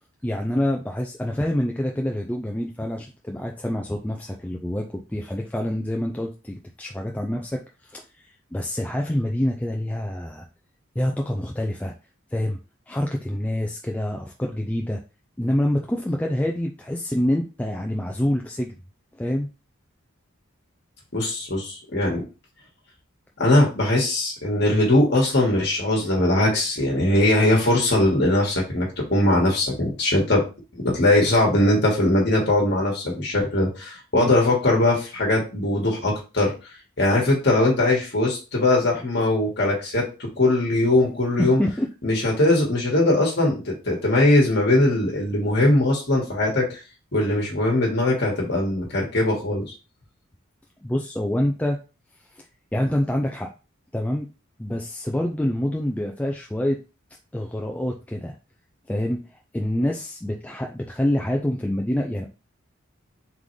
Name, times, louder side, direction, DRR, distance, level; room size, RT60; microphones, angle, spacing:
voice 1, 0.2-10.5 11.0-11.9 12.3-12.6 12.9-15.0 15.4-18.7 19.2-19.5 34.1-34.3 41.4-41.9 50.8-51.8 52.4-52.5 52.7-53.5 53.9-54.3 54.6-56.8 57.3-58.3 58.9-59.2 59.5-62.3, left 1 dB, 5° left, 1 dB, 0.3 m, -26 dB
voice 2, 21.1-22.2 23.4-30.4 30.7-36.5 37.0-41.6 42.0-46.8 47.1-49.6, left 1 dB, 50° left, -2 dB, 1.4 m, -20 dB
3.8 x 3.6 x 3.2 m, 0.31 s
head